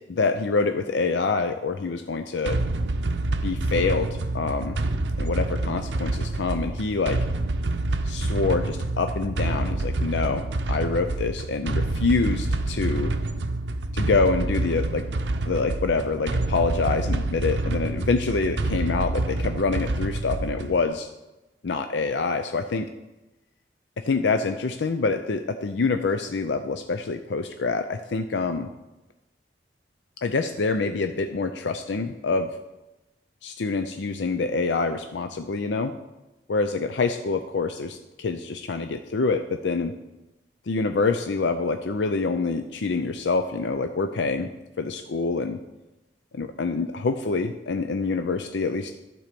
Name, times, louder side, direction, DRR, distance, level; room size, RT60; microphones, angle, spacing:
voice 1, 0.1-2.6 3.4-4.8 5.2-7.2 8.0-13.1 13.9-15.1 15.5-21.1 21.6-22.9 24.0-28.7 30.2-32.5 33.4-35.9 36.5-39.9 40.7-44.5 44.8-45.6 46.3-48.9, left 4 dB, 80° left, 7 dB, 0.5 m, -26 dB
sound 1, 2.5-20.9, right 2 dB, 80° right, 0.7 m, -27 dB
12.0 x 4.6 x 6.8 m, 1.0 s
head